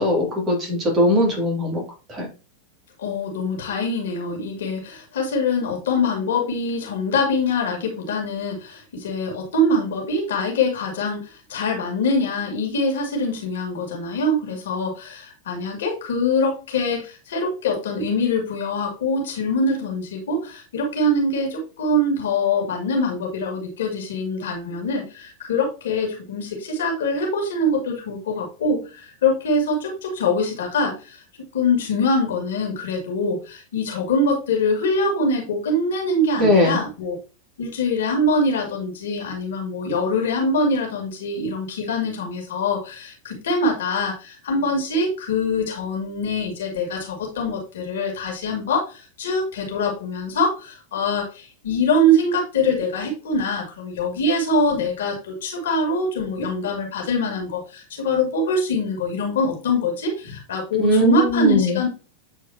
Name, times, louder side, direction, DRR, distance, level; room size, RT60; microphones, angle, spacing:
voice 1, 0.0-1.8 2.1-2.3 36.4-36.8 60.8-61.8, left 1 dB, 25° right, 0 dB, 3.1 m, -19 dB
voice 2, 3.0-37.1 37.6-61.9, left 2 dB, 60° left, 1 dB, 2.5 m, -24 dB
8.6 x 4.6 x 2.9 m, 0.33 s
figure-of-eight pair, 90°, 0 cm